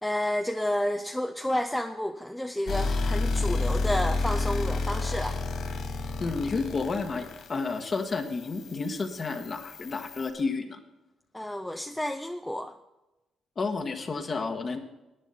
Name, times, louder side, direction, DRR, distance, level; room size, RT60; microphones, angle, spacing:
voice 1, 0.0-5.4 11.3-12.7, left 1 dB, 5° left, 6 dB, 0.7 m, -30 dB
sound 1, 2.7-10.3, left 3 dB, 60° left, 2.7 m, -31 dB
voice 2, 6.2-10.8 13.6-14.8, left 4 dB, 40° left, 3 dB, 1.4 m, -31 dB
11.5 x 9.1 x 5.7 m, 0.99 s
cardioid pair, 90°, 0 cm